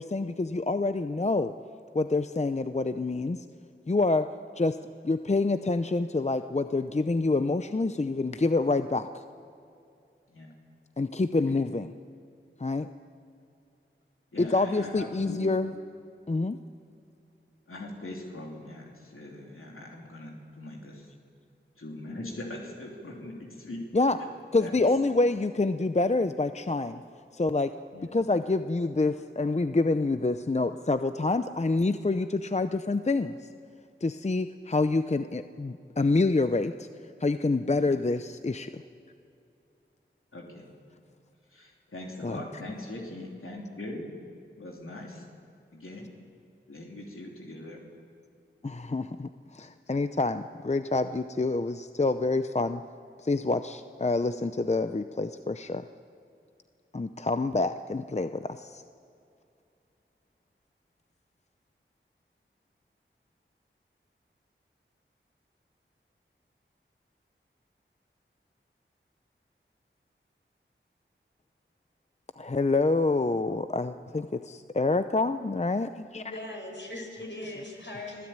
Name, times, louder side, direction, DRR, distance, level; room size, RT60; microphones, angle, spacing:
voice 1, 0.0-1.5 1.9-3.4 3.9-4.3 4.6-4.8 5.0-9.2 11.0-11.9 12.6-12.9 14.4-15.7 16.3-16.6 23.9-24.2 24.5-27.0 27.3-27.7 28.1-33.4 34.0-36.9 37.2-38.8 42.2-42.4 48.6-52.8 53.2-55.8 56.9-58.8 72.4-76.2, left 3 dB, 30° left, 10 dB, 0.7 m, -27 dB
voice 2, 14.3-15.5 17.7-21.1 21.8-23.8 24.2-24.3 24.6-24.8 27.9-28.1 37.7-37.9 40.3-40.7 41.5-44.1 44.6-45.2 45.7-46.1 46.7-47.8, left 1 dB, 80° left, -1 dB, 3.2 m, -41 dB
voice 3, 76.1-78.3, left 1 dB, 60° left, 1 dB, 5.7 m, -39 dB
25.0 x 15.5 x 8.9 m, 2.5 s
wide cardioid pair, 45°, 21 cm